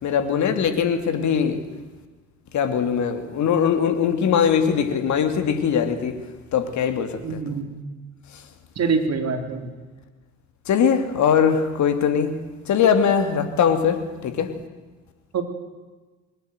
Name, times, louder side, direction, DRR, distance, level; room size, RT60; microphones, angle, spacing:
voice 1, 0.0-1.6 2.5-6.1 6.5-7.4 8.3-8.4 10.7-12.3 12.7-14.5, left 7 dB, 50° left, 9 dB, 2.8 m, -21 dB
voice 2, 7.2-7.7 8.8-9.7 15.3-15.4, right 5 dB, 45° right, 7 dB, 3.7 m, -24 dB
21.0 x 18.0 x 8.0 m, 1.3 s
hypercardioid pair, 55°, 37 cm